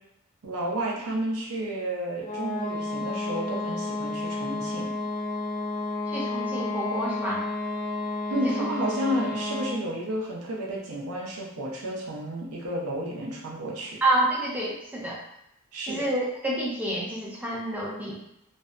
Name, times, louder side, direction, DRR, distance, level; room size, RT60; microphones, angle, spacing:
voice 1, 0.4-4.9 8.3-14.0 15.7-16.1, right 1 dB, 80° right, -3 dB, 0.6 m, -31 dB
sound 1, 2.2-9.9, left 2 dB, 40° left, 0.5 m, -31 dB
voice 2, 6.1-7.4 8.4-8.7 14.0-15.2 15.9-18.2, right 1 dB, 5° right, -5 dB, 0.5 m, -28 dB
2.5 x 2.1 x 2.4 m, 0.79 s
head